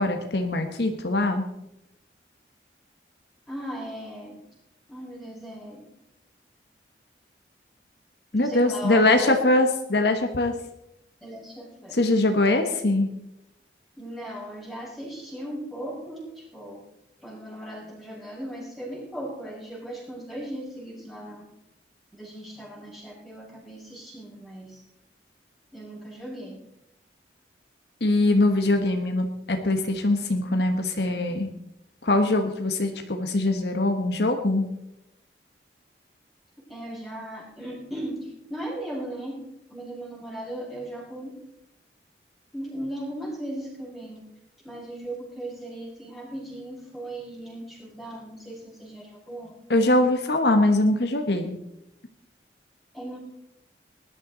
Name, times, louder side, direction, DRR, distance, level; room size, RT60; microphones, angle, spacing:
voice 1, 0.0-1.4 8.3-10.5 11.9-13.1 28.0-31.5 32.0-34.7 49.7-51.6, left 2 dB, 70° left, 5 dB, 1.4 m, -22 dB
voice 2, 3.5-4.4 4.9-5.8 8.3-9.4 11.2-12.0 14.0-16.8 17.2-21.4 22.1-24.8 25.7-26.6 36.7-39.4 39.7-41.3 42.5-44.2 44.6-49.5 52.9-53.2, right 1 dB, ahead, -6 dB, 5.6 m, -37 dB
19.5 x 12.0 x 4.0 m, 0.84 s
head